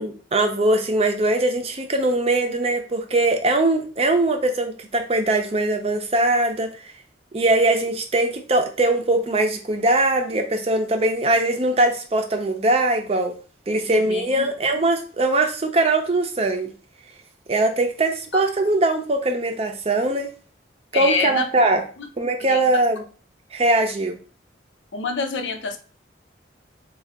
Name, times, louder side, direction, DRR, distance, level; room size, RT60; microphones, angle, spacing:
voice 1, 0.0-6.8 7.3-13.3 13.7-16.7 17.5-20.3 20.9-21.8 22.2-23.0 23.5-24.2, right 2 dB, 35° right, 5 dB, 0.5 m, -21 dB
voice 2, 13.8-14.5 18.3-18.4 20.9-21.5 22.0-22.1 22.5-22.6 24.9-25.8, left 4 dB, 80° left, 6 dB, 0.6 m, -26 dB
3.7 x 2.3 x 3.4 m, 0.39 s
head